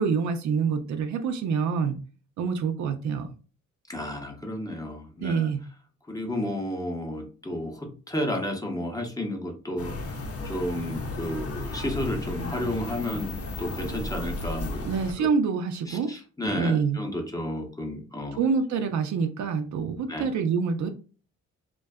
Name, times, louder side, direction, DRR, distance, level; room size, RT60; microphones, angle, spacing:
voice 1, 0.0-2.0 2.4-3.3 5.2-5.6 14.8-16.1 16.6-17.0 18.4-20.9, right 5 dB, 70° right, 0.5 m, -26 dB
voice 2, 3.9-5.5 6.1-14.9 15.2-15.3 15.9-18.4 20.1-20.3, left 1 dB, 10° left, 0.7 m, -32 dB
sound 1, 9.8-15.1, left 2 dB, 50° left, 0.7 m, -34 dB
2.5 x 2.2 x 2.2 m
cardioid pair, 80°, 30 cm